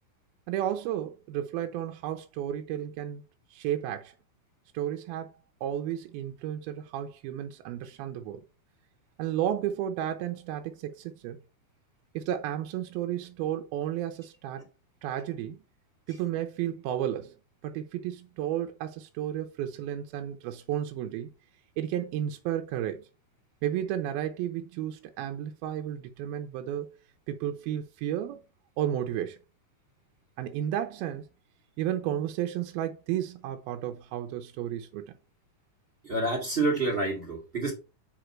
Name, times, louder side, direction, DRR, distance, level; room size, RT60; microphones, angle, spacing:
voice 1, 0.5-3.2 3.5-4.1 4.7-5.3 5.6-8.4 9.2-11.4 12.1-14.6 15.0-15.6 16.1-17.3 17.6-21.3 21.8-23.1 23.6-27.0 27.3-28.4 28.8-29.4 30.4-31.2 31.8-35.2, right 11 dB, 80° right, 2.5 m, -32 dB
voice 2, 36.0-37.7, right 2 dB, 25° right, 1.2 m, -28 dB
5.1 x 5.1 x 4.4 m
omnidirectional pair, 4.5 m